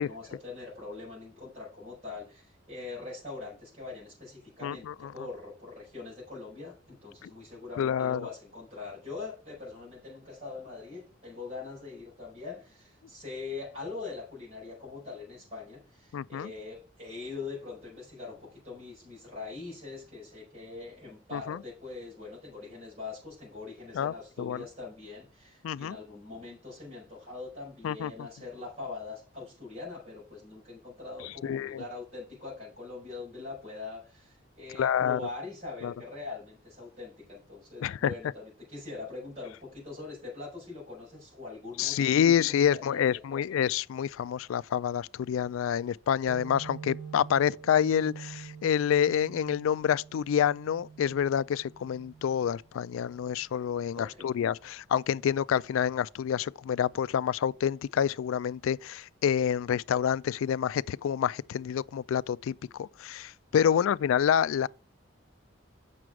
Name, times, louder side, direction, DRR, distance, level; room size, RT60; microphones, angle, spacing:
voice 1, 0.0-43.6 53.9-54.3 63.7-63.9, left 3 dB, 30° right, 4.9 m, -42 dB
voice 2, 4.6-5.1 7.2-7.3 7.8-8.3 16.1-16.5 21.3-21.6 23.9-24.6 25.6-26.0 27.8-28.1 31.2-31.8 34.8-35.2 35.8-35.9 37.8-38.1 41.8-64.7, left 8 dB, 85° left, 0.3 m, -28 dB
sound 1, 46.3-53.6, right 6 dB, 70° right, 2.8 m, -46 dB
7.7 x 6.0 x 4.7 m
head